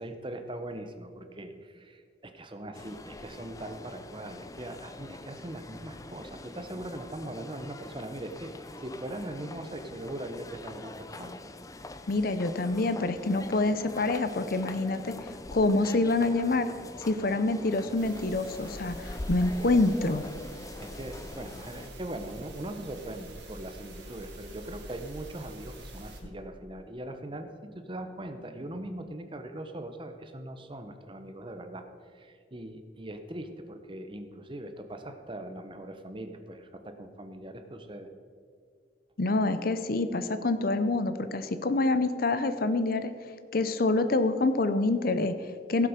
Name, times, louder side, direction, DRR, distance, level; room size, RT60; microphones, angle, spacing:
voice 1, 0.0-11.4 19.0-19.1 20.8-31.8 32.1-38.1, right 1 dB, 30° right, 7 dB, 0.9 m, -40 dB
sound 1, 2.7-21.9, left 2 dB, 20° left, 0.5 m, -44 dB
voice 2, 12.1-15.2 15.5-16.7 17.1-20.2 39.2-43.1 43.5-45.9, left 2 dB, 55° left, 11 dB, 0.7 m, -26 dB
sound 2, 18.0-26.2, right 1 dB, 80° right, 2.7 m, -46 dB
16.5 x 7.5 x 5.1 m, 2.1 s
head